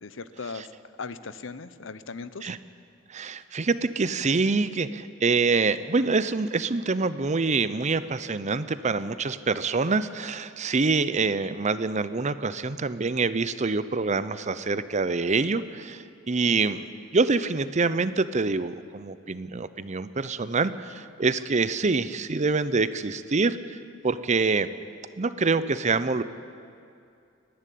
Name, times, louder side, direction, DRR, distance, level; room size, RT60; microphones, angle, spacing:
voice 1, 0.0-0.7 1.0-2.5, left 4 dB, 70° left, 14 dB, 0.8 m, -38 dB
voice 2, 3.1-16.9 17.1-23.8 24.0-24.7 25.2-26.2, right 4 dB, 35° right, 14 dB, 0.7 m, -26 dB
29.5 x 11.0 x 8.5 m, 2.6 s
head